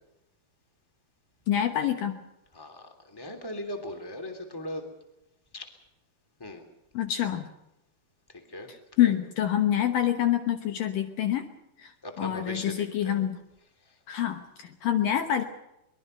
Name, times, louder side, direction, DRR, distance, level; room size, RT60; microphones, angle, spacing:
voice 1, 1.5-2.2 6.9-7.5 8.7-11.5 11.8-13.4 14.1-15.4, left 11 dB, 65° left, 8 dB, 2.6 m, -27 dB
voice 2, 2.5-4.8 5.5-5.7 6.4-6.6 8.5-8.7 9.0-9.1 12.0-13.2, left 1 dB, 5° left, 7 dB, 2.5 m, -38 dB
23.0 x 21.5 x 6.6 m, 0.87 s
omnidirectional pair, 4.6 m